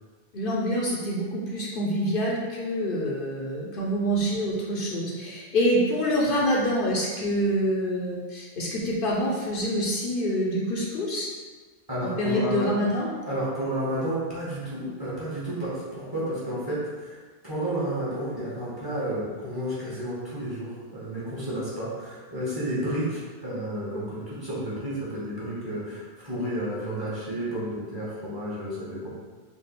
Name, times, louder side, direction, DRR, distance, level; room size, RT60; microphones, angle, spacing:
voice 1, 0.3-11.3 12.0-13.1, equal, 65° left, -4 dB, 0.8 m, -26 dB
voice 2, 11.9-12.7 13.2-17.2 17.4-29.1, equal, 20° right, -9 dB, 1.1 m, -31 dB
3.5 x 2.4 x 3.9 m, 1.4 s
omnidirectional pair, 1.1 m